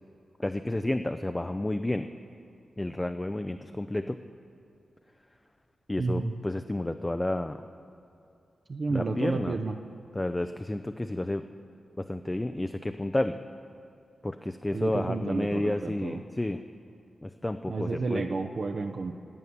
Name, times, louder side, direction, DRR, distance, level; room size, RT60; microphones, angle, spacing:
voice 1, 0.4-2.1 2.8-4.2 5.9-7.6 8.9-9.6 10.1-11.5 12.0-13.4 14.2-16.6 17.2-18.2, left 1 dB, 15° left, 7 dB, 0.4 m, -31 dB
voice 2, 6.0-6.3 8.7-9.8 14.7-16.2 17.7-19.1, right 3 dB, 50° right, 5 dB, 0.6 m, -31 dB
12.5 x 7.1 x 9.4 m, 2.7 s
wide cardioid pair, 95°, 0 cm